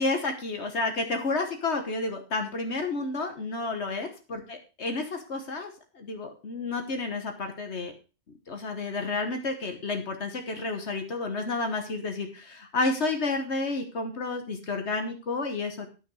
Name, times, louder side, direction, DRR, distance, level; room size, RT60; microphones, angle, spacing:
voice 1, 0.0-7.9 8.5-15.9, left 3 dB, 70° left, 5 dB, 1.5 m, -31 dB
9.6 x 8.6 x 4.7 m, 0.33 s
omnidirectional pair, 1.2 m